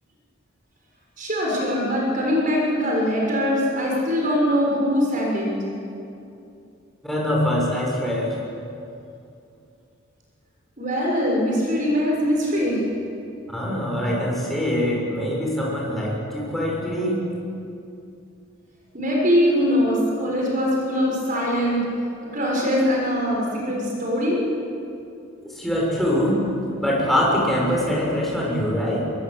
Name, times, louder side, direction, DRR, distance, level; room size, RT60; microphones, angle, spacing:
voice 1, 1.2-5.6 10.8-12.9 18.9-21.8 22.3-24.4, equal, 40° right, -3 dB, 6.4 m, -22 dB
voice 2, 7.0-8.4 13.5-17.2 25.4-26.4 26.8-29.1, equal, ahead, -4 dB, 6.9 m, -23 dB
24.0 x 22.5 x 8.4 m, 2.6 s
head